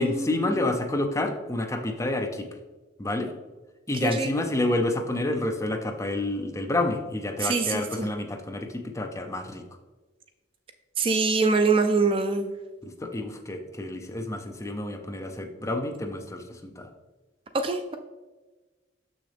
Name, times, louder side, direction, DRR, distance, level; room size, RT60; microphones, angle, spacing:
voice 1, 0.0-2.5 3.0-3.3 3.9-9.6 12.8-16.9, left 2 dB, 15° left, 4 dB, 0.6 m, -29 dB
voice 2, 7.4-8.1 11.0-12.5 17.5-18.0, right 4 dB, 30° right, 7 dB, 0.3 m, -24 dB
6.8 x 6.3 x 3.4 m, 1.2 s
head